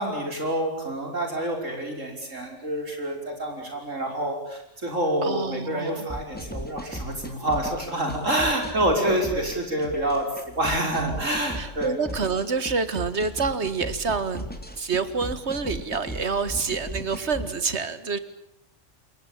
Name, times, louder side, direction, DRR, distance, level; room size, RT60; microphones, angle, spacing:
voice 1, 0.0-10.3 10.6-12.0, right 1 dB, 75° right, 3 dB, 6.2 m, -27 dB
voice 2, 5.2-6.1 11.6-14.5 14.8-18.2, right 5 dB, 60° right, 13 dB, 2.0 m, -27 dB
sound 1, 6.1-17.5, equal, 5° left, 3.4 m, -36 dB
28.5 x 22.0 x 8.9 m, 0.74 s
omnidirectional pair, 1.3 m